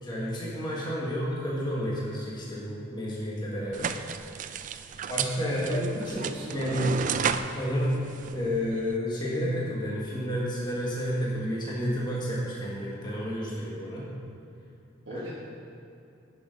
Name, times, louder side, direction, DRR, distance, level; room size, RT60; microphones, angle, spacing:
voice 1, 0.0-4.0 5.1-7.0 7.5-8.0 8.3-14.1 15.1-15.2, equal, 25° left, -6 dB, 1.6 m, -30 dB
sound 1, 3.7-9.0, right 7 dB, 40° right, 0.3 m, -33 dB
voice 2, 5.7-7.3 15.1-15.3, equal, 65° right, -5 dB, 1.3 m, -40 dB
10.0 x 6.7 x 5.2 m, 2.7 s
head